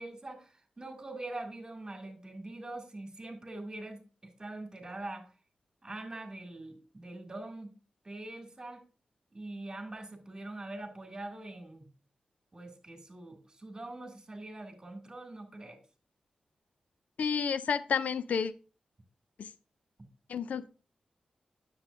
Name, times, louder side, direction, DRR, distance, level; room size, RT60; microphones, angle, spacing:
voice 1, 0.0-5.3 5.8-7.7 8.0-8.8 9.3-11.9 12.5-15.8, right 2 dB, 30° right, 2.3 m, -43 dB
voice 2, 17.2-18.5 19.4-19.5 20.3-20.7, left 6 dB, 85° left, 0.4 m, -30 dB
9.7 x 7.5 x 2.6 m
cardioid pair, 60°, 2 cm